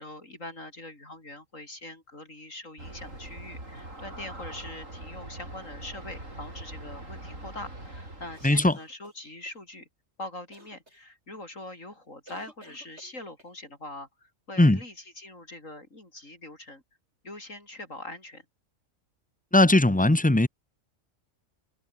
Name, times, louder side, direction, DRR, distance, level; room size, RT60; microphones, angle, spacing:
voice 1, 0.0-9.9 10.2-16.8 17.2-18.5, left 2 dB, 85° left, 7.1 m, -43 dB
Aircraft, 2.8-8.6, right 1 dB, 85° right, 8.4 m, -42 dB
sound 1, 8.3-9.6 10.5-11.0 12.3-13.6, right 1 dB, 60° right, 8.2 m, -54 dB
voice 2, 19.5-20.5, left 1 dB, 5° left, 1.1 m, -19 dB
omnidirectional pair, 1.3 m